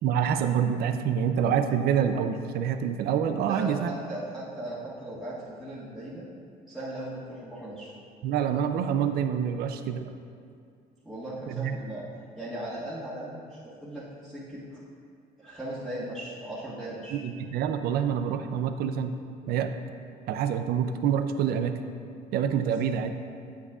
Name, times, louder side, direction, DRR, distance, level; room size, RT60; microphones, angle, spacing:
voice 1, 0.0-3.9 8.2-10.0 11.5-11.8 17.1-19.1 19.5-19.8 20.3-21.8 22.3-23.1, right 8 dB, 70° right, 8 dB, 0.5 m, -26 dB
voice 2, 3.4-6.2 6.7-7.9 11.0-12.0 12.4-14.8 15.4-17.2, right 1 dB, ahead, -13 dB, 1.6 m, -38 dB
8.5 x 8.1 x 2.4 m, 2.3 s
cardioid pair, 110°, 17 cm